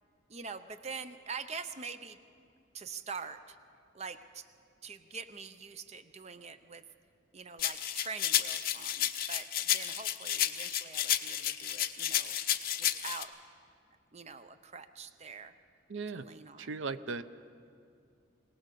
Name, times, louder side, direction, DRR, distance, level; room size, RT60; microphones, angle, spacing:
voice 1, 0.3-2.2 2.7-3.6 3.9-4.5 4.8-6.8 7.3-12.4 12.8-13.3 14.1-15.6 16.1-16.8, right 5 dB, 35° right, 11 dB, 0.6 m, -44 dB
sound 1, 7.6-13.2, left 11 dB, 50° left, 0.9 m, -31 dB
voice 2, 15.9-16.2 16.6-17.2, right 4 dB, 75° right, 13 dB, 0.6 m, -37 dB
22.5 x 18.5 x 6.7 m, 2.4 s
head